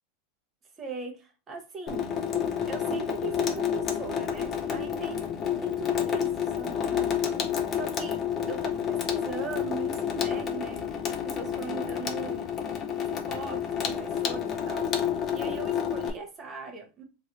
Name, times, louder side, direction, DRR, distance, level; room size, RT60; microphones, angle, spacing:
voice 1, 0.8-2.1 2.7-5.3 5.6-8.2 8.5-10.8 11.1-12.5 13.1-17.0, right 4 dB, 20° right, 3 dB, 0.9 m, -40 dB
Water tap faucet / Sink (filling or washing), 1.9-16.1, left 8 dB, 30° left, 0.5 m, -29 dB
3.1 x 2.6 x 2.9 m, 0.30 s
supercardioid pair, 155°, 0 cm